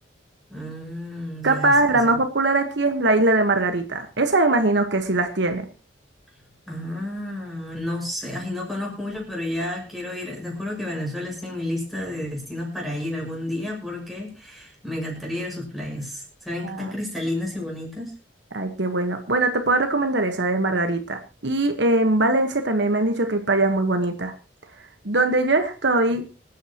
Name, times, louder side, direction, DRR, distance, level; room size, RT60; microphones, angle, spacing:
voice 1, 0.5-2.2 6.7-18.2, left 1 dB, ahead, -2 dB, 5.9 m, -31 dB
voice 2, 1.4-5.6 16.6-16.9 18.5-24.3 25.0-26.2, right 2 dB, 65° right, 6 dB, 1.3 m, -21 dB
26.0 x 9.2 x 3.0 m, 0.32 s
head